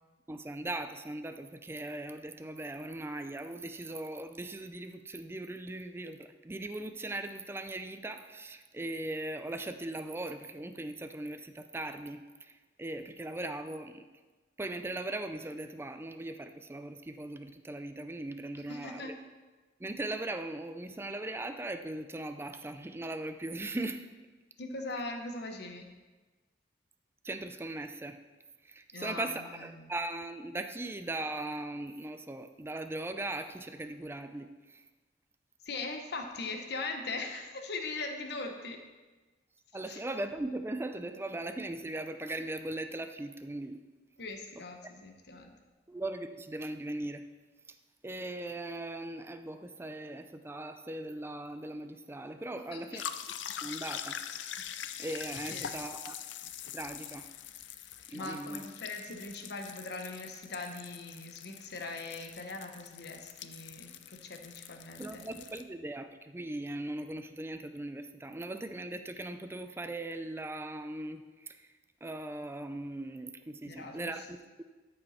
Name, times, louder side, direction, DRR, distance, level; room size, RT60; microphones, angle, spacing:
voice 1, 0.3-14.1 14.6-19.2 19.8-24.1 27.2-28.2 28.6-34.8 39.7-43.8 44.6-44.7 45.9-47.3 48.0-53.0 53.6-54.7 55.0-56.2 56.7-57.3 58.1-58.7 65.0-71.7 72.0-74.6, right 2 dB, 15° right, 8 dB, 0.4 m, -39 dB
voice 2, 18.7-19.2 24.6-25.9 28.9-30.0 35.6-38.8 39.8-40.0 44.2-45.5 52.7-53.0 55.5-55.9 58.1-65.3 73.6-74.3, left 3 dB, 65° left, 4 dB, 1.1 m, -41 dB
sound 1, 53.0-65.6, left 9 dB, 85° left, 0.5 m, -43 dB
13.0 x 5.5 x 4.2 m, 1.3 s
head